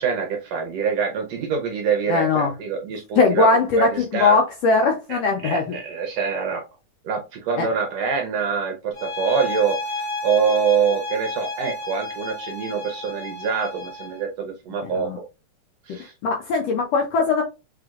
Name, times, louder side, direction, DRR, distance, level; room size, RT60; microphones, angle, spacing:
voice 1, 0.0-3.5 3.8-4.4 5.1-6.6 7.0-15.2 15.9-16.1, right 6 dB, 75° right, 1.6 m, -25 dB
voice 2, 2.1-2.5 3.2-5.8 7.6-7.7 14.8-15.2 16.2-17.4, left 4 dB, 75° left, 1.5 m, -20 dB
sound 1, 8.9-14.2, left 3 dB, 40° left, 1.2 m, -31 dB
5.0 x 3.9 x 2.4 m
omnidirectional pair, 3.6 m